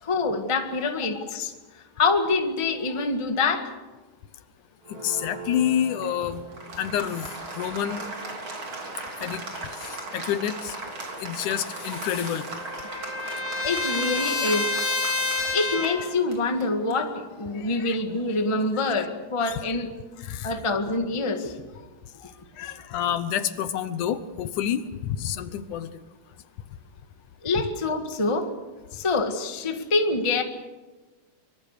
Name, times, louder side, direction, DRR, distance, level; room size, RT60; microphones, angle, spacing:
voice 1, 0.0-1.5 2.0-3.7 13.2-13.3 13.6-14.7 15.5-19.9 20.4-21.9 22.2-22.3 22.6-22.7 27.4-28.5 28.9-30.4, left 3 dB, 15° left, 5 dB, 1.0 m, -26 dB
Applause, 4.8-19.2, right 2 dB, 40° right, 3.9 m, -38 dB
voice 2, 4.9-6.4 6.8-7.3 7.5-8.1 9.2-10.8 11.2-12.5 17.6-18.0 19.4-19.6 20.2-20.5 22.6-26.0, left 10 dB, 75° left, 12 dB, 2.3 m, -28 dB
Trumpet, 11.7-16.1, left 3 dB, 35° left, 2.4 m, -29 dB
24.5 x 23.0 x 6.7 m, 1.2 s
omnidirectional pair, 3.8 m